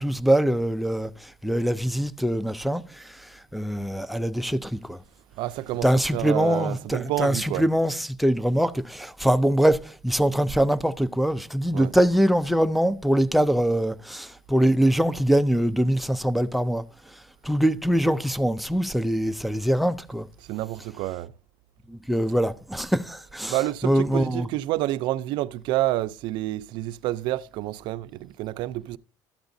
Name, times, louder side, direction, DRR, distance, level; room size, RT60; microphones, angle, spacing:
voice 1, 0.0-5.0 5.8-16.8 17.4-20.3 21.9-23.5 23.8-24.5, equal, ahead, 0.4 m, -23 dB
voice 2, 5.4-7.6 11.7-11.9 20.4-21.3 23.5-29.0, right 16 dB, 70° right, 0.4 m, -29 dB
13.0 x 8.0 x 2.6 m
cardioid pair, 145°, 8 cm